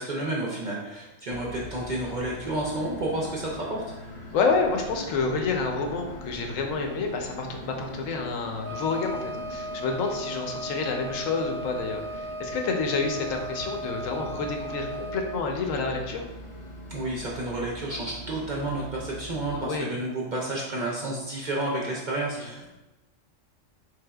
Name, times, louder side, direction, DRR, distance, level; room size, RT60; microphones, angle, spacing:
voice 1, 0.0-3.8 16.9-22.7, right 2 dB, 55° right, -4 dB, 0.5 m, -31 dB
sound 1, 1.3-19.7, left 1 dB, 45° left, 0.6 m, -42 dB
voice 2, 4.3-16.2 19.5-19.9 22.3-22.5, left 4 dB, 90° left, 3 dB, 1.0 m, -29 dB
Wind instrument woodwind instrument, 8.6-15.3, right 1 dB, 15° right, 0.8 m, -36 dB
3.9 x 3.3 x 2.3 m, 1.0 s
omnidirectional pair, 1.3 m